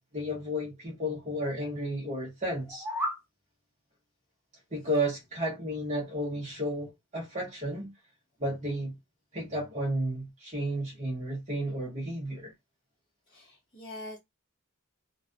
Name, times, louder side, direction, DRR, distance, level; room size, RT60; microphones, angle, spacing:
voice 1, 0.1-2.8 4.7-7.9 8.4-9.0 9.3-12.5, equal, 30° right, 0.8 m, -32 dB
sound 1, 2.5-3.3, equal, 10° right, 0.4 m, -33 dB
voice 2, 13.3-14.2, left 1 dB, 20° left, 0.8 m, -44 dB
2.4 x 2.2 x 2.4 m
head